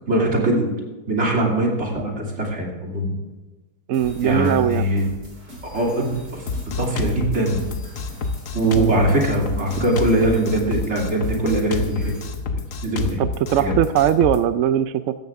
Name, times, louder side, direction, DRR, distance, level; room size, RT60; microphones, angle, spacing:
voice 1, 0.1-0.7 1.1-3.2 4.2-5.0 5.7-6.4 6.8-7.6 8.5-12.1 12.8-13.2 13.6-13.7, right 1 dB, 40° right, -1 dB, 3.1 m, -21 dB
voice 2, 3.9-4.9 8.8-9.0 13.2-15.2, right 10 dB, 75° right, 13 dB, 0.7 m, -20 dB
sound 1, 3.9-12.3, equal, 90° right, 4.7 m, -41 dB
Drum kit, 6.5-14.4, left 4 dB, 55° left, 1.2 m, -28 dB
16.0 x 14.0 x 3.6 m, 1.2 s
omnidirectional pair, 1.8 m